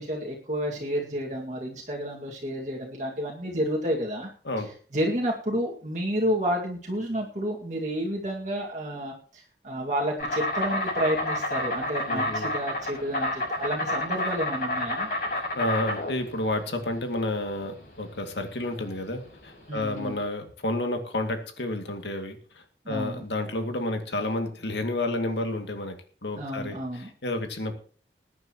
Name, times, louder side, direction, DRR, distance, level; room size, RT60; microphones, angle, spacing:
voice 1, 0.0-4.3 4.9-15.1 19.7-20.2 22.8-23.2 26.3-27.1, equal, 40° right, -2 dB, 2.1 m, -30 dB
Insect, 10.2-20.2, left 1 dB, 50° left, 6.7 m, -30 dB
voice 2, 12.1-12.5 15.3-27.7, left 2 dB, 85° left, 5 dB, 2.3 m, -31 dB
21.0 x 9.6 x 3.0 m, 0.43 s
head